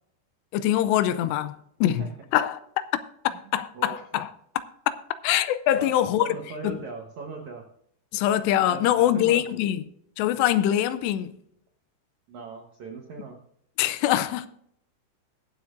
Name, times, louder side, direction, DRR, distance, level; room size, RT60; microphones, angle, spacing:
voice 1, 0.5-1.6 1.8-2.6 3.5-4.3 5.2-6.3 6.6-6.8 8.1-9.8 10.2-11.3 13.8-14.5, left 12 dB, 85° left, 2.7 m, -23 dB
voice 2, 5.7-7.7 8.7-9.4 12.3-13.4, right 4 dB, 75° right, 1.7 m, -39 dB
21.5 x 8.1 x 2.5 m
omnidirectional pair, 5.0 m